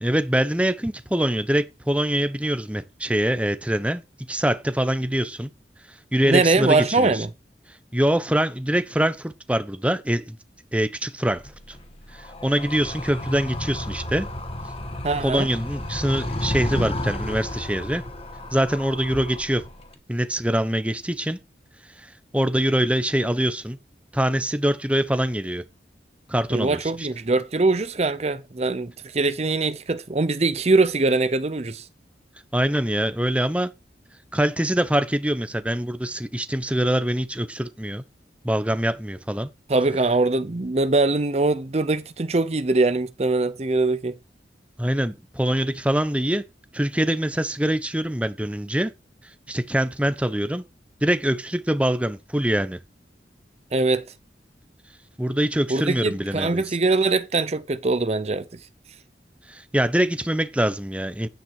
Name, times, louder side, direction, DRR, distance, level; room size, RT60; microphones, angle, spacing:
voice 1, 0.0-4.0 4.3-5.5 6.1-7.2 7.9-10.4 10.7-11.4 11.7-11.8 12.1-14.3 15.2-18.0 18.5-19.6 20.1-21.4 22.0-22.1 22.3-23.8 24.1-25.6 26.3-27.1 32.5-33.7 34.3-38.0 38.4-39.5 44.8-46.4 46.7-48.9 49.5-50.6 51.0-52.8 55.2-56.8 59.5-61.3, right 1 dB, 5° right, 0.9 m, -24 dB
voice 2, 6.2-7.3 15.0-15.5 26.5-31.9 39.7-44.1 53.7-54.0 55.7-58.6, right 3 dB, 35° right, 0.7 m, -22 dB
Animal, 11.4-19.9, left 1 dB, 35° left, 1.9 m, -32 dB
10.5 x 9.3 x 4.8 m
head